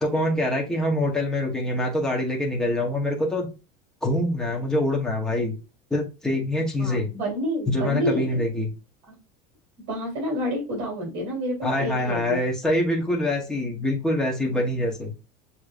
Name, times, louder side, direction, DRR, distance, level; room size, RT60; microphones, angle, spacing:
voice 1, 0.0-3.5 4.0-5.6 5.9-7.1 7.7-8.7 11.6-15.1, left 1 dB, 5° left, -1 dB, 0.9 m, -25 dB
voice 2, 6.8-8.4 9.1-9.2 9.9-12.4, equal, 55° right, -3 dB, 2.8 m, -29 dB
6.5 x 2.9 x 2.4 m, 0.29 s
cardioid pair, 175°, 19 cm